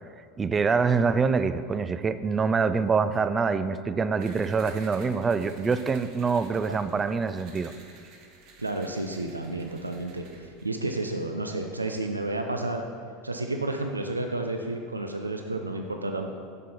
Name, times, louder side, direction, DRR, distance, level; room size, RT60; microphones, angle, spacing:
voice 1, 0.4-7.7, right 5 dB, 20° right, 13 dB, 0.3 m, -25 dB
sound 1, 4.2-10.7, right 3 dB, 50° right, 1.1 m, -51 dB
voice 2, 8.6-12.8 13.2-16.3, right 2 dB, 85° right, 4 dB, 0.4 m, -31 dB
7.4 x 5.9 x 5.3 m, 2.2 s
figure-of-eight pair, 80°, 0 cm